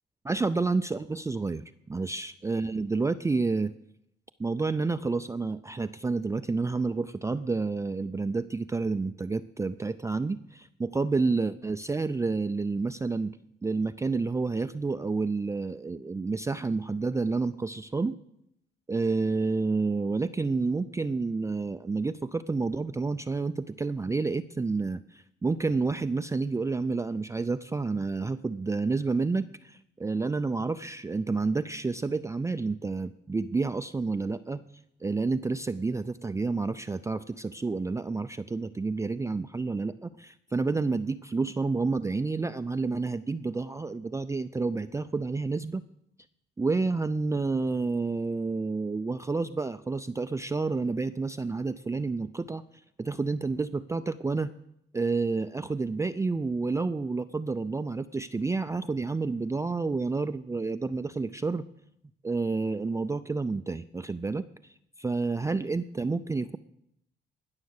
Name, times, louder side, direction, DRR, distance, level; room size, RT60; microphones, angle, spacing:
voice 1, 0.2-3.7 4.4-13.3 13.6-18.2 18.9-34.6 35.0-45.8 46.6-52.6 53.0-54.5 54.9-61.7 62.2-66.6, right 3 dB, 15° right, 10 dB, 0.4 m, -29 dB
19.5 x 6.4 x 6.5 m, 0.77 s
cardioid pair, 90°, 20 cm